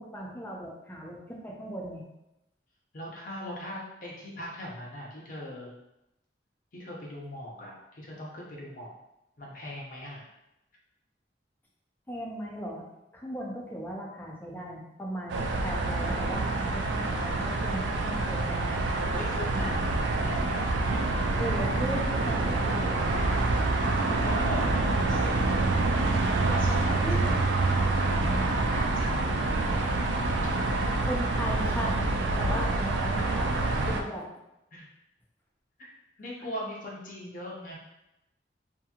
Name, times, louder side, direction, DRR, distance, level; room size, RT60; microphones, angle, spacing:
voice 1, 0.0-2.0 12.1-12.8 13.1-18.7 21.4-23.5 23.7-24.7 27.0-27.4 31.1-34.3, equal, 10° left, -2 dB, 0.5 m, -37 dB
voice 2, 2.9-5.7 6.7-8.9 9.4-10.2 18.7-20.7 24.2-25.4 26.4-28.5 28.8-30.7 33.1-33.3 33.8-33.9 34.7-34.9 35.8-35.9 36.2-37.7, left 1 dB, 50° left, -3 dB, 0.7 m, -40 dB
sound 1, 15.3-34.0, right 2 dB, 90° right, 0.3 m, -27 dB
2.8 x 2.6 x 2.4 m, 0.89 s
head